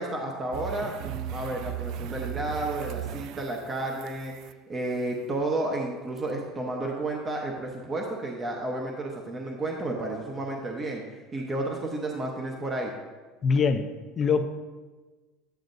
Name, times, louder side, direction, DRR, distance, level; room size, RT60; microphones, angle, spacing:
voice 1, 0.0-12.9, right 2 dB, 20° right, 0 dB, 0.9 m, -32 dB
sound 1, 0.5-4.5 6.2-6.3, right 10 dB, 55° right, 0.3 m, -37 dB
voice 2, 13.4-14.4, left 5 dB, 25° left, 8 dB, 0.6 m, -24 dB
11.0 x 9.2 x 2.6 m, 1.3 s
cardioid pair, 160°, 0 cm